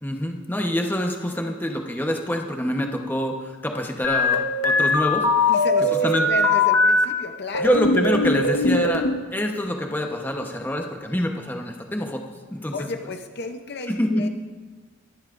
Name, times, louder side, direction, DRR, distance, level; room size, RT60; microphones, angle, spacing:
voice 1, 0.0-5.5 6.0-6.3 7.6-9.0 9.3-12.2 12.5-12.7 13.9-14.3, left 1 dB, 10° left, 2 dB, 1.0 m, -26 dB
sound 1, 4.0-7.0 7.5-9.1, left 2 dB, 90° left, 1.2 m, -20 dB
voice 2, 5.5-7.8 12.7-14.3, left 3 dB, 50° left, 6 dB, 0.7 m, -32 dB
23.5 x 11.5 x 2.6 m, 1.4 s
head